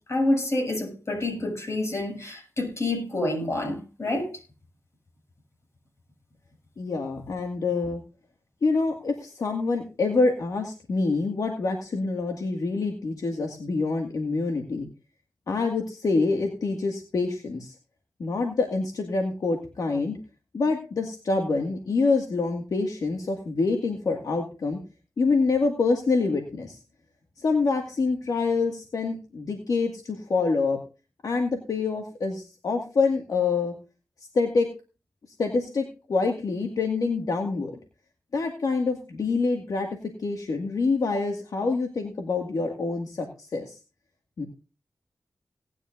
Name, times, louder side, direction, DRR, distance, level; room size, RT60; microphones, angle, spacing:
voice 1, 0.1-4.4, left 2 dB, 50° left, 7.5 m, -28 dB
voice 2, 6.8-8.0 8.6-14.9 15.5-17.7 18.2-20.2 20.5-24.8 25.2-26.8 27.4-30.8 31.2-33.7 34.3-34.7 35.4-37.8 38.3-39.9 40.2-43.8 44.4-44.5, left 3 dB, 80° left, 2.1 m, -26 dB
18.5 x 11.0 x 2.6 m
cardioid pair, 60°, 6 cm